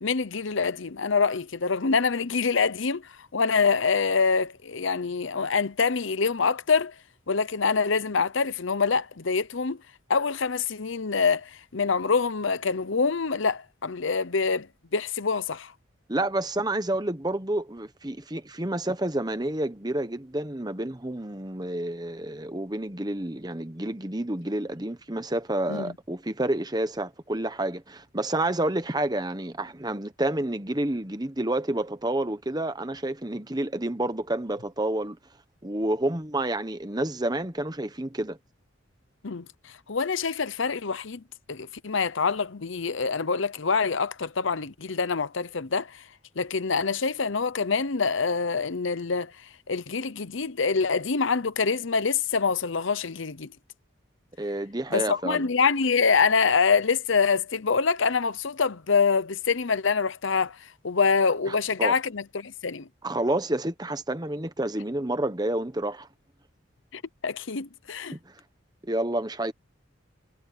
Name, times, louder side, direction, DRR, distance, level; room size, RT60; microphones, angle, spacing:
voice 1, 0.0-3.0 3.3-6.9 7.3-9.8 10.1-14.7 14.9-15.7 25.7-25.9 39.2-39.5 39.9-41.2 41.5-46.0 46.4-49.3 49.7-53.5 54.9-62.9 66.9-68.2, left 5 dB, 70° left, 0.8 m, -25 dB
voice 2, 16.1-35.2 35.6-38.4 54.4-55.5 61.5-61.9 63.0-66.1 68.1-68.3 68.8-69.5, right 1 dB, 20° right, 1.2 m, -29 dB
head